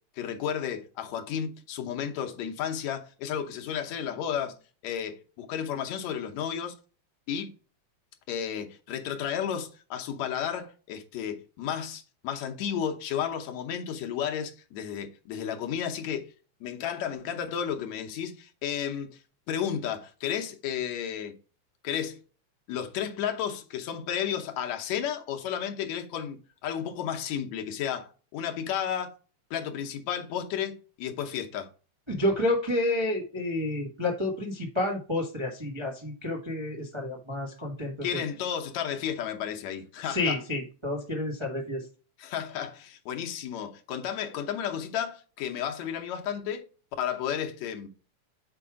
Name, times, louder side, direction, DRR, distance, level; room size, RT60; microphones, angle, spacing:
voice 1, 0.2-6.8 7.3-7.5 8.3-16.3 16.6-19.2 19.5-21.4 21.8-22.2 22.7-29.1 29.5-31.7 38.0-40.4 42.2-46.6 47.0-47.9, left 9 dB, 75° left, 2.1 m, -33 dB
voice 2, 32.1-38.2 40.0-41.9, left 1 dB, 35° right, 0.4 m, -30 dB
6.8 x 4.8 x 3.6 m
omnidirectional pair, 3.3 m